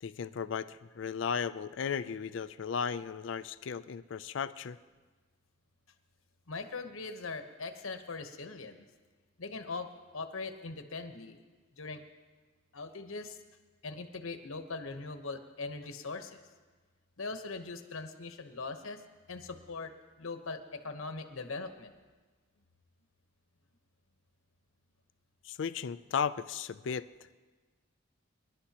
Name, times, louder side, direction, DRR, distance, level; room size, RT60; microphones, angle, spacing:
voice 1, 0.0-4.8 25.4-27.1, left 6 dB, 60° left, 14 dB, 0.4 m, -35 dB
voice 2, 6.5-8.9 9.4-11.4 11.8-12.0 12.7-13.4 13.8-16.4 17.2-19.0 19.3-22.0, left 3 dB, 85° left, 7 dB, 1.1 m, -41 dB
25.0 x 11.0 x 2.9 m, 1.4 s
head